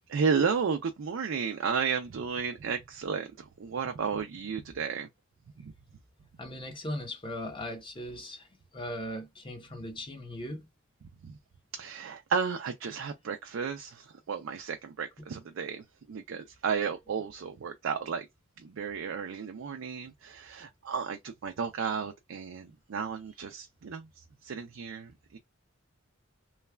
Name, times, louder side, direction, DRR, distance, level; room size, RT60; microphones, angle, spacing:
voice 1, 0.1-3.3 3.6-5.1 5.6-5.7 11.2-11.3 11.7-18.3 18.6-25.4, right 6 dB, 70° right, 0.4 m, -33 dB
voice 2, 6.4-8.5 8.7-10.7, left 1 dB, 25° left, 0.8 m, -38 dB
3.2 x 2.2 x 2.2 m
head